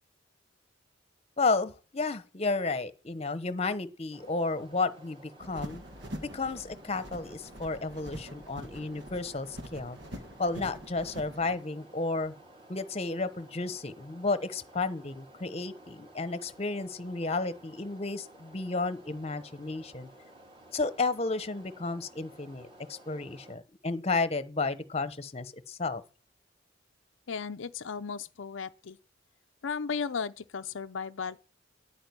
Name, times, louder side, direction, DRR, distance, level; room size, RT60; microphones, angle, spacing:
voice 1, 1.4-5.8 6.2-10.0 10.4-12.3 12.7-20.1 20.7-26.0, left 3 dB, 30° left, 0.9 m, -32 dB
sound 1, 4.1-23.6, right 1 dB, 25° right, 3.0 m, -54 dB
sound 2, 5.4-11.6, right 1 dB, 60° right, 1.7 m, -44 dB
voice 2, 27.3-29.0 29.6-31.4, left 5 dB, 80° left, 0.6 m, -35 dB
10.0 x 8.9 x 9.5 m
head